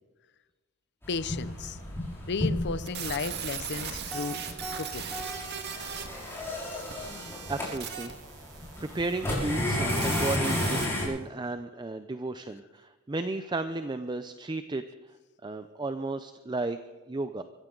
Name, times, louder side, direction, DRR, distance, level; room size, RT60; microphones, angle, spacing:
sound 1, 1.0-11.0, left 1 dB, 10° left, 6.1 m, -33 dB
voice 1, 1.1-1.8 2.3-4.4 4.8-5.1, left 4 dB, 55° left, 14 dB, 0.6 m, -34 dB
sound 2, 2.9-10.8, right 7 dB, 55° right, 1.8 m, -39 dB
sound 3, 4.1-6.6, right 1 dB, 5° right, 3.1 m, -42 dB
voice 2, 7.0-8.1 8.8-14.8 15.4-16.8 17.1-17.4, right 2 dB, 20° right, 10 dB, 0.5 m, -34 dB
24.0 x 15.5 x 3.9 m, 1.3 s
head